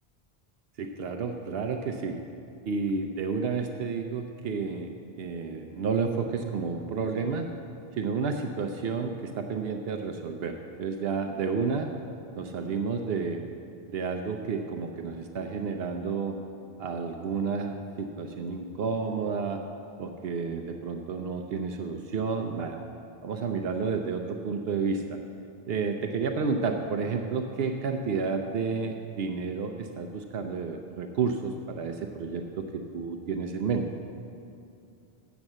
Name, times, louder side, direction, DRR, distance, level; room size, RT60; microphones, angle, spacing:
voice 1, 0.8-2.2 2.7-4.9 5.2-7.5 7.9-11.9 12.4-13.4 13.9-16.4 16.8-19.6 20.0-22.8 23.2-25.2 25.7-33.8, right 5 dB, 75° right, 4 dB, 0.8 m, -31 dB
7.2 x 7.1 x 7.8 m, 2.5 s
omnidirectional pair, 1.0 m